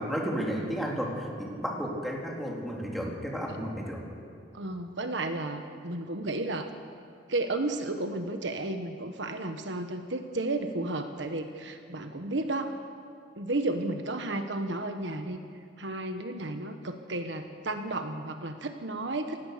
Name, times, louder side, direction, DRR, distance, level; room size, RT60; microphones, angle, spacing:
voice 1, 0.0-4.0, equal, ahead, -2 dB, 3.6 m, -33 dB
voice 2, 4.5-6.7 7.3-12.7 13.4-15.4 15.8-19.4, right 2 dB, 70° right, 6 dB, 1.4 m, -33 dB
29.0 x 16.0 x 6.9 m, 2.3 s
head